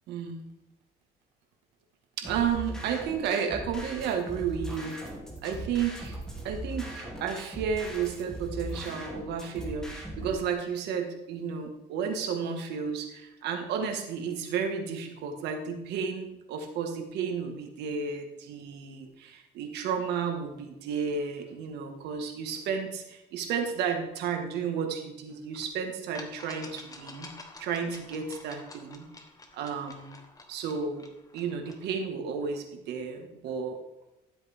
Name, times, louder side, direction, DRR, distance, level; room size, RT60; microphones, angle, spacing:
voice 1, 0.1-0.4 2.2-5.0 5.4-6.2 6.4-27.3 27.6-29.1 29.5-30.2 30.5-31.0 31.3-33.8, right 6 dB, 80° right, 4 dB, 1.8 m, -32 dB
sound 1, 2.2-10.3, equal, 5° left, 2.9 m, -39 dB
sound 2, 25.5-25.6 26.1-31.9, left 3 dB, 20° left, 1.4 m, -49 dB
13.0 x 8.0 x 3.7 m, 0.94 s
cardioid pair, 110°, 17 cm